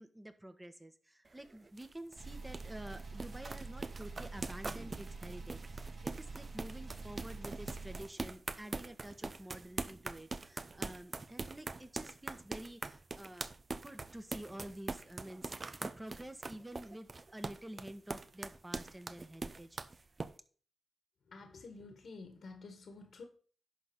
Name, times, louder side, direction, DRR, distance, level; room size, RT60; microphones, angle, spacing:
voice 1, 0.0-13.5 13.8-19.8, right 1 dB, 15° right, 1.4 m, -49 dB
sound 1, 1.3-20.3, right 3 dB, 40° right, 0.8 m, -43 dB
sound 2, 2.1-8.0, right 3 dB, 65° right, 2.7 m, -46 dB
voice 2, 21.3-23.2, left 3 dB, 75° left, 1.8 m, -50 dB
11.0 x 4.2 x 6.2 m
cardioid pair, 65°, 0 cm